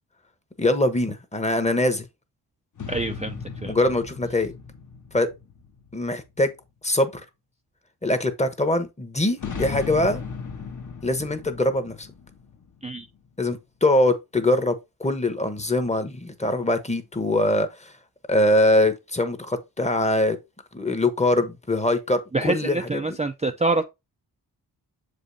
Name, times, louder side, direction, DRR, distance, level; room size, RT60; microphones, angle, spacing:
voice 1, 0.6-2.1 3.6-4.5 5.1-5.3 5.9-6.5 6.8-7.2 8.0-10.2 11.0-12.1 13.4-17.9 18.3-20.4 20.7-23.2, left 1 dB, 15° left, 1.0 m, -23 dB
sound 1, 2.8-6.5 9.4-13.2, left 6 dB, 45° left, 1.2 m, -37 dB
voice 2, 2.9-3.8 12.8-13.1 22.3-23.8, right 2 dB, 15° right, 0.5 m, -26 dB
7.2 x 5.2 x 2.7 m
wide cardioid pair, 110°, 41 cm